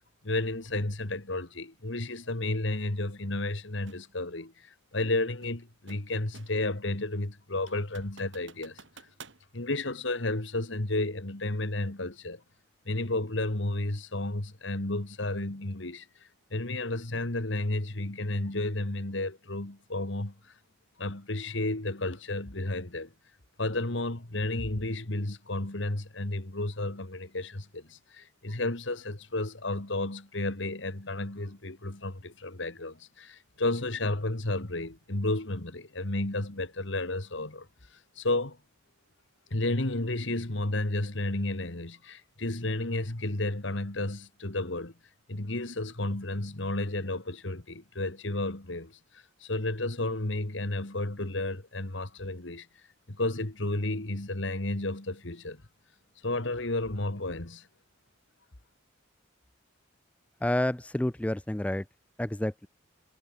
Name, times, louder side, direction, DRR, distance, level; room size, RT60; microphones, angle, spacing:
voice 1, 0.2-8.8 9.5-12.4 12.9-16.1 16.5-20.3 21.0-23.1 23.6-37.7 38.2-38.6 39.5-44.9 45.3-52.7 53.1-55.6 56.2-57.7, left 2 dB, 65° left, 2.1 m, -32 dB
sound 1, 3.9-4.1 5.4-6.7 7.1-7.2 7.7-9.4, right 5 dB, 65° right, 4.6 m, -52 dB
voice 2, 60.4-61.9 62.2-62.7, left 1 dB, 5° left, 0.4 m, -29 dB
head